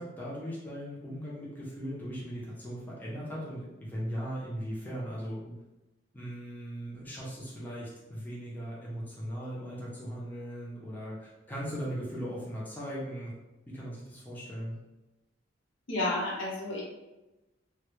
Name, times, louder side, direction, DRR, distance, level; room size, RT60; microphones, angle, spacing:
voice 1, 0.0-5.6 6.1-13.3 13.7-14.7, equal, 10° left, -7 dB, 0.5 m, -38 dB
voice 2, 15.9-16.8, left 2 dB, 85° left, -5 dB, 0.8 m, -31 dB
2.1 x 2.0 x 2.9 m, 1.0 s
head